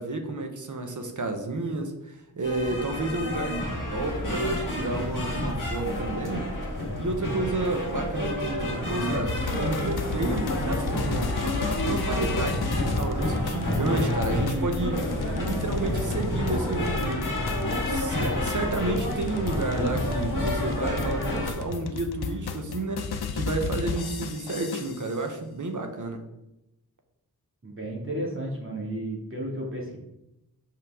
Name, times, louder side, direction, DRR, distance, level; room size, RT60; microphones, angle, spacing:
voice 1, 0.0-3.6 3.9-6.5 7.0-11.4 11.8-17.5 17.8-26.3, right 2 dB, 55° right, 5 dB, 1.0 m, -31 dB
sound 1, 2.4-21.5, left 1 dB, 55° left, 1.9 m, -29 dB
sound 2, 9.3-25.2, left 5 dB, 80° left, 0.7 m, -34 dB
voice 2, 27.6-30.0, right 1 dB, 35° right, -3 dB, 2.2 m, -33 dB
5.7 x 5.7 x 3.6 m, 0.89 s
wide cardioid pair, 105°, 38 cm